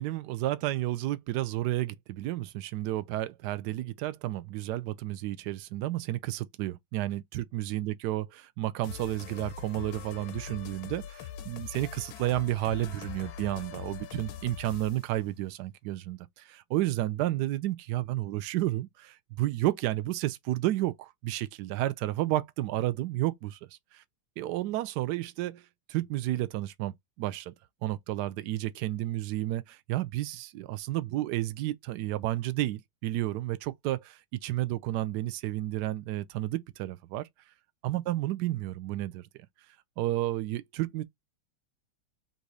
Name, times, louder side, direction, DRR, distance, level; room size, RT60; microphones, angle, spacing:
voice 1, 0.0-23.6 23.9-24.0 24.4-27.5 27.8-37.3 37.8-39.3 40.0-41.0, right 15 dB, 75° right, 1.0 m, -31 dB
sound 1, 8.8-15.1, left 10 dB, 85° left, 1.6 m, -42 dB
4.0 x 2.6 x 4.7 m
omnidirectional pair, 2.2 m